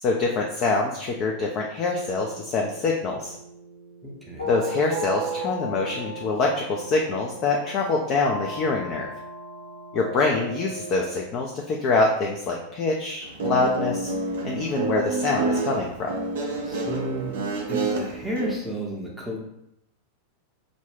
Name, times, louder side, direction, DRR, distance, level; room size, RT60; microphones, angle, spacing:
voice 1, 0.0-3.4 4.5-9.1 9.9-14.1 14.4-16.2, left 3 dB, 35° left, 0 dB, 0.3 m, -25 dB
sound 1, 1.8-11.2, right 2 dB, 85° left, 0.9 m, -36 dB
voice 2, 4.0-4.5 16.6-17.3 17.7-19.4, equal, ahead, -4 dB, 0.6 m, -32 dB
Guitar, 13.2-18.5, right 3 dB, 55° right, 0.4 m, -28 dB
2.5 x 2.1 x 3.4 m, 0.80 s
figure-of-eight pair, 90°, 0 cm